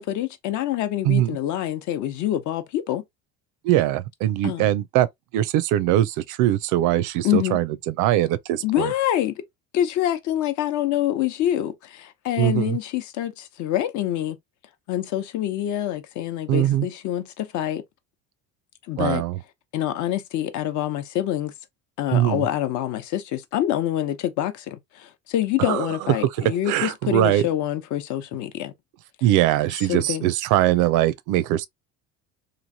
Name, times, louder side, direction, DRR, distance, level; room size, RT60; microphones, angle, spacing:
voice 1, 0.0-3.0 4.4-4.7 7.2-7.6 8.6-9.4 9.7-14.4 14.9-17.8 18.9-19.2 19.7-21.5 22.0-28.7 29.9-30.3, left 12 dB, 65° left, 0.8 m, -26 dB
voice 2, 1.0-1.4 3.6-5.1 5.3-8.9 12.4-12.8 16.5-16.9 19.0-19.4 22.1-22.5 25.6-25.9 26.4-27.4 29.2-31.7, right 13 dB, 70° right, 0.5 m, -21 dB
3.1 x 2.4 x 2.7 m
cardioid pair, 110°, 32 cm